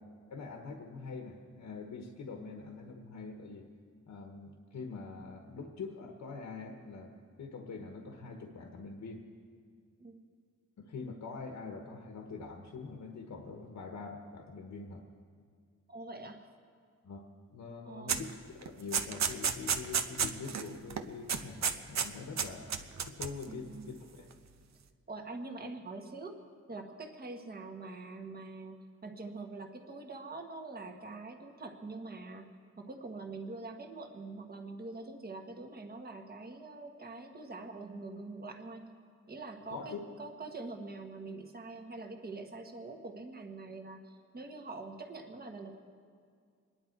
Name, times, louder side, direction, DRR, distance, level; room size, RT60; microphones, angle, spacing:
voice 1, 0.3-3.7 4.1-9.2 10.8-15.0 17.0-17.2 17.5-22.7 23.0-24.3 39.7-40.0, left 4 dB, 75° left, 3 dB, 1.3 m, -44 dB
voice 2, 15.9-16.4 17.8-18.3 23.5-23.9 25.1-26.4 26.7-32.5 32.8-38.9 39.3-45.8, right 3 dB, 30° right, 3 dB, 1.3 m, -44 dB
sound 1, 18.1-18.3 18.6-20.7 20.9-21.0 21.3-22.1 22.4-23.4, right 7 dB, 65° right, 0.9 m, -31 dB
26.5 x 10.5 x 4.6 m, 2.2 s
wide cardioid pair, 170°, 29 cm